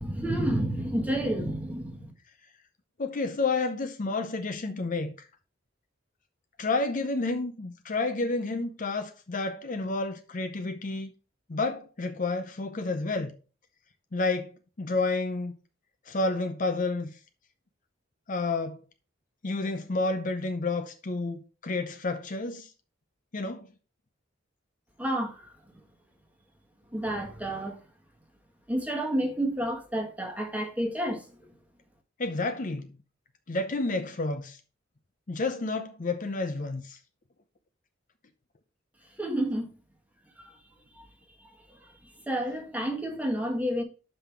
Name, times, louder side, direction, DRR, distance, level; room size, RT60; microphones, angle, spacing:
voice 1, 0.0-2.1 25.0-25.5 26.9-27.8 28.7-31.5 39.2-39.7 40.4-40.6 40.9-41.1 41.4-43.8, right 1 dB, 10° right, 1.3 m, -30 dB
voice 2, 3.0-5.3 6.6-11.1 11.5-13.3 14.1-14.5 14.8-15.5 16.1-17.1 18.3-18.8 19.4-22.7 23.3-23.7 32.2-32.9 33.5-34.6 35.3-37.0, left 3 dB, 45° left, 0.6 m, -30 dB
5.7 x 5.4 x 4.5 m
head